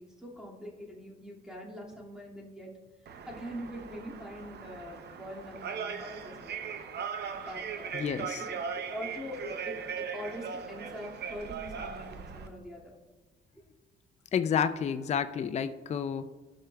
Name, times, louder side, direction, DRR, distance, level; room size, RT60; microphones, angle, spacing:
voice 1, 0.0-2.7 3.3-6.6 7.3-8.1 8.4-13.0, equal, 5° right, -4 dB, 2.2 m, -43 dB
sound 1, 3.1-12.5, right 6 dB, 55° right, 0.7 m, -39 dB
voice 2, 7.9-8.4 14.3-16.3, left 7 dB, 35° left, 10 dB, 0.4 m, -30 dB
17.0 x 6.0 x 2.3 m, 1.3 s
cardioid pair, 90°, 20 cm